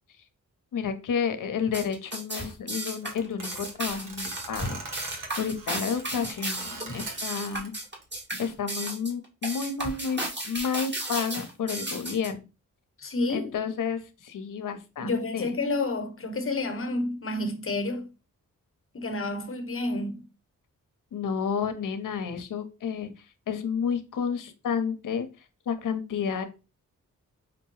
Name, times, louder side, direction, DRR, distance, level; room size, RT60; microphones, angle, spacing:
voice 1, 0.7-4.8 5.4-7.7 8.4-12.4 13.3-15.6 21.1-25.3 25.7-26.4, left 6 dB, 70° left, 0.7 m, -31 dB
sound 1, 1.7-12.3, right 1 dB, 30° right, 1.7 m, -34 dB
sound 2, 3.0-7.7 8.0-8.7, right 3 dB, 70° right, 1.1 m, -42 dB
voice 2, 13.0-13.5 15.0-18.1 18.9-20.3, left 2 dB, 40° left, 1.0 m, -30 dB
5.1 x 2.2 x 3.0 m
cardioid pair, 45°, 33 cm